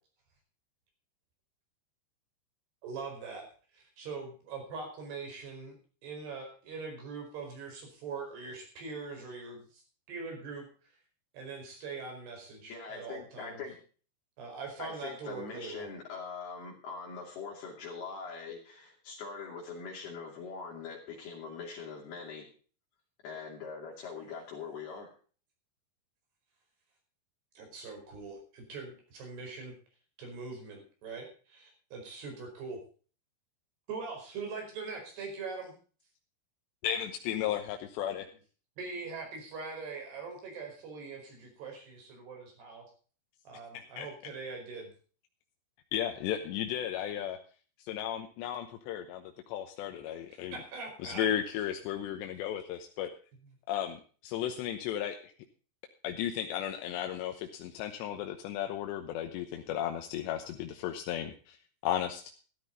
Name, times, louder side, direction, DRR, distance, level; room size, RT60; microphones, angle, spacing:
voice 1, 2.8-3.5 3.7-5.8 6.0-9.8 10.1-10.7 11.3-13.6 14.4-15.9 27.5-29.7 30.2-32.8 33.9-35.7 38.8-42.9 43.4-44.9 50.3-51.3, right 4 dB, 70° right, 2 dB, 6.8 m, -42 dB
voice 2, 12.7-13.8 14.8-22.5 23.2-25.1, left 5 dB, 65° left, -2 dB, 4.4 m, -42 dB
voice 3, 36.8-38.3 43.7-44.1 45.9-47.4 47.8-50.6 51.0-53.1 53.7-55.2 56.0-61.6 61.8-62.2, left 10 dB, 85° left, 5 dB, 3.2 m, -34 dB
13.5 x 13.0 x 3.9 m, 0.40 s
omnidirectional pair, 4.9 m